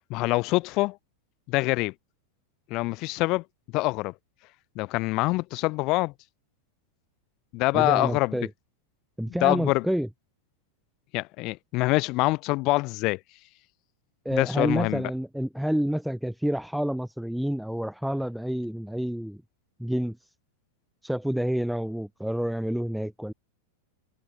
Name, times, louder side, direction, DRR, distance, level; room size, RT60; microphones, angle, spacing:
voice 1, 0.1-1.0 1.5-1.9 2.7-3.4 3.7-4.1 4.8-6.1 7.5-8.4 9.3-9.9 11.1-13.2 14.3-15.0, left 22 dB, 40° left, 0.5 m, -25 dB
voice 2, 7.7-8.5 9.2-10.1 14.2-19.4 19.8-20.3 21.0-23.3, equal, ahead, 1.1 m, -28 dB
figure-of-eight pair, 90°, 0 cm